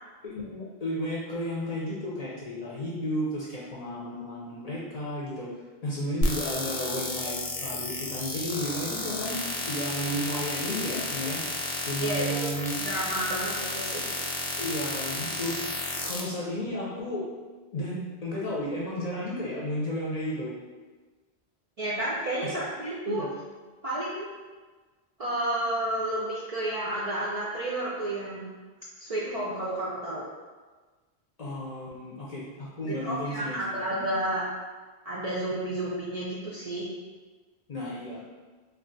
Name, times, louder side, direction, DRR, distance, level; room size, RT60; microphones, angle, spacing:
voice 1, 0.2-5.5 5.8-9.4 9.7-11.4 11.8-12.8 14.6-15.6 16.0-17.3 17.7-20.5 22.4-22.6 23.1-23.3 31.4-33.6 33.9-34.0 37.7-38.2, equal, 45° left, -6 dB, 0.6 m, -33 dB
sound 1, 6.2-16.2, left 2 dB, 80° left, 0.8 m, -32 dB
voice 2, 12.0-12.5 12.8-14.0 21.8-23.2 23.8-24.3 25.2-28.5 29.0-30.3 32.8-34.4 35.0-36.9, right 1 dB, 50° right, -7 dB, 0.4 m, -31 dB
2.4 x 2.3 x 3.8 m, 1.3 s
omnidirectional pair, 1.1 m